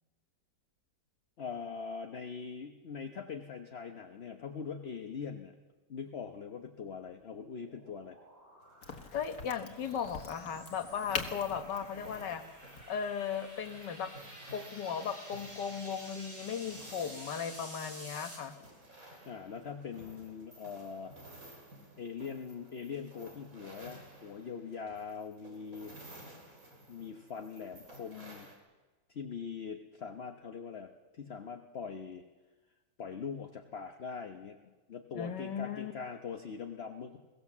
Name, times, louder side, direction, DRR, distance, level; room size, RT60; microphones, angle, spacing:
voice 1, 1.4-5.5 5.9-8.2 19.2-21.1 21.5-21.6 22.0-25.9 26.9-28.5 29.1-32.2 33.0-34.6 34.9-37.2, left 6 dB, 45° left, 5 dB, 1.0 m, -42 dB
sound 1, 6.8-18.4, equal, 35° right, 5.9 m, -51 dB
sound 2, 8.6-28.6, right 1 dB, 50° right, 3.9 m, -55 dB
Crack, 8.8-14.3, left 5 dB, 60° left, 2.1 m, -44 dB
voice 2, 9.1-12.4 12.9-14.1 14.5-18.5 35.1-35.9, left 7 dB, 75° left, 8 dB, 1.8 m, -37 dB
22.5 x 17.5 x 7.3 m, 1.2 s
omnidirectional pair, 1.9 m